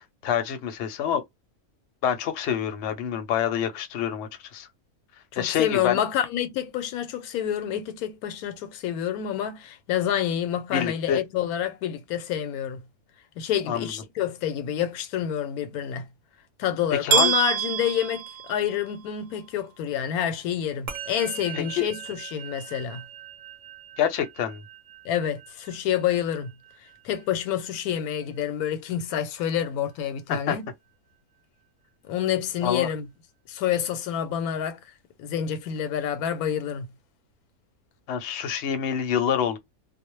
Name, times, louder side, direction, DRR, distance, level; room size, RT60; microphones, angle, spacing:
voice 1, 0.2-1.2 2.0-4.7 5.4-6.0 10.7-11.2 13.7-13.9 17.0-17.3 21.5-21.9 24.0-24.6 30.3-30.6 32.6-32.9 38.1-39.6, left 8 dB, 60° left, 0.8 m, -26 dB
voice 2, 5.3-12.8 13.4-16.0 16.6-18.2 18.5-23.0 25.0-26.5 27.0-30.7 32.1-33.0 33.5-34.8 35.2-36.9, left 10 dB, 85° left, 1.1 m, -28 dB
sound 1, 17.1-19.1, right 8 dB, 70° right, 0.9 m, -26 dB
Musical instrument, 20.9-30.4, right 9 dB, 40° right, 0.6 m, -43 dB
2.3 x 2.1 x 3.0 m
omnidirectional pair, 1.5 m